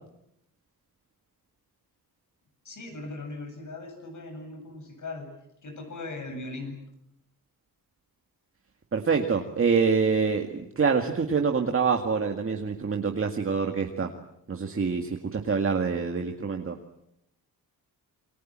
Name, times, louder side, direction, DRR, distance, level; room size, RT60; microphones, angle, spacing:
voice 1, 2.6-5.3 5.6-6.7, left 2 dB, 50° left, 6 dB, 8.0 m, -39 dB
voice 2, 8.9-14.1 14.5-16.8, right 5 dB, 35° right, 3 dB, 2.0 m, -26 dB
28.0 x 23.5 x 7.6 m, 0.78 s
cardioid pair, 115°, 37 cm